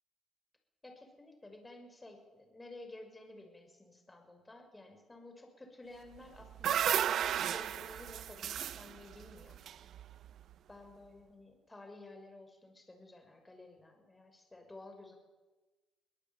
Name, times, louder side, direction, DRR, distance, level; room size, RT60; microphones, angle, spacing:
voice 1, 0.8-9.6 10.7-15.2, left 2 dB, 15° left, 4 dB, 6.1 m, -53 dB
sound 1, 6.1-10.4, right 10 dB, 70° right, 0.7 m, -34 dB
22.5 x 18.5 x 9.1 m, 1.2 s
cardioid pair, 90°, 0 cm